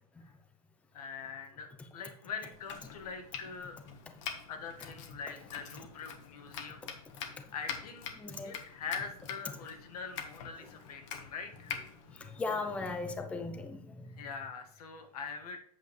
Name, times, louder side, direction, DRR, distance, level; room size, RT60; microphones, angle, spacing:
voice 1, 0.9-3.8 4.5-6.9 7.5-8.1 8.4-11.7 14.2-15.6, left 5 dB, 75° left, 5 dB, 1.7 m, -43 dB
Domestic sounds home sounds, 2.5-13.2, left 7 dB, 55° left, 1.4 m, -45 dB
voice 2, 8.2-8.5 12.2-14.1, left 3 dB, 5° left, 7 dB, 0.5 m, -37 dB
8.3 x 7.4 x 3.2 m, 0.63 s
supercardioid pair, 160°, 19 cm